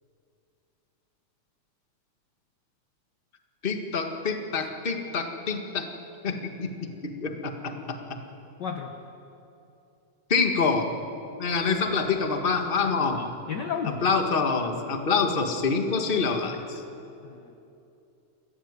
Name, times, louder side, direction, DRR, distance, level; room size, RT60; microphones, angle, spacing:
voice 1, 3.6-5.9 6.2-8.2 10.3-10.9 11.4-13.3 14.0-16.8, left 4 dB, 25° left, 5 dB, 1.1 m, -26 dB
voice 2, 8.6-8.9 13.5-14.0 17.2-17.6, left 7 dB, 60° left, 5 dB, 1.1 m, -32 dB
29.0 x 14.5 x 9.8 m, 2.8 s
omnidirectional pair, 3.5 m